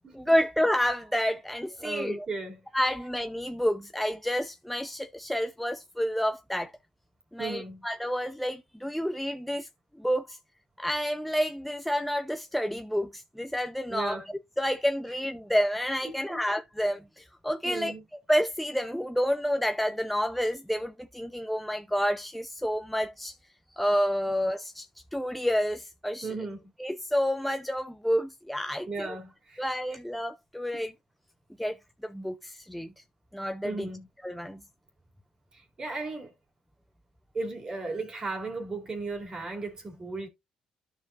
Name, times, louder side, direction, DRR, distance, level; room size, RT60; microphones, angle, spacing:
voice 1, 0.1-2.3 2.7-6.7 7.3-9.7 10.0-10.4 10.8-14.2 14.6-17.9 18.3-23.3 23.8-24.9 25.1-26.3 26.8-29.2 29.6-30.9 31.6-31.8 32.0-32.9 33.3-33.9 34.2-34.6, equal, 5° left, 0.6 m, -29 dB
voice 2, 1.8-2.6 7.4-7.8 13.9-14.3 16.0-16.4 17.6-18.0 26.2-26.7 28.9-29.6 29.9-30.0 30.7-30.8 33.6-34.1 35.5-36.3 37.3-40.3, right 3 dB, 35° right, 2.7 m, -36 dB
13.0 x 4.7 x 2.5 m
cardioid pair, 85°, 2 cm